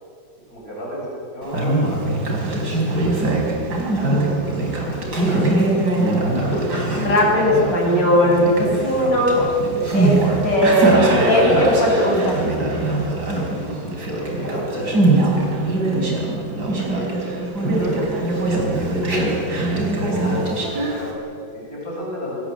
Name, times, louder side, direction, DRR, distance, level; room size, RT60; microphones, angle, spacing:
voice 1, 0.5-3.0 4.1-4.7 13.9-15.8 16.2-17.4 18.1-19.3 19.9-22.4, left 1 dB, 55° left, -5 dB, 8.2 m, -33 dB
Conversation, 1.4-21.1, right 2 dB, 65° right, 5.3 m, -22 dB
voice 2, 7.0-9.4 9.9-12.4 17.6-18.0, equal, 85° left, -2 dB, 8.1 m, -18 dB
28.0 x 23.0 x 7.6 m, 2.4 s
omnidirectional pair, 1.9 m